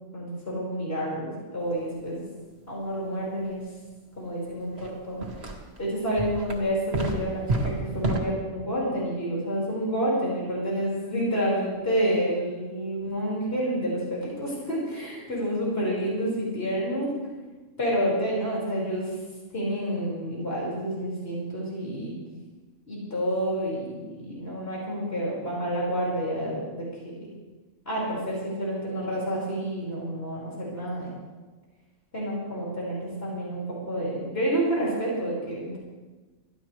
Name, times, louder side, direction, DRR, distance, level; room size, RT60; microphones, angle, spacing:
voice 1, 0.1-2.2 2.7-3.6 4.2-5.3 5.8-17.1 17.8-19.1 19.5-22.1 22.9-26.9 27.9-31.1 32.1-35.8, equal, 50° left, -6 dB, 5.4 m, -29 dB
sound 1, 4.8-4.9 5.2-5.8 6.2-8.2, right 2 dB, 55° right, 2.2 m, -29 dB
23.0 x 15.0 x 3.3 m, 1.3 s
omnidirectional pair, 1.3 m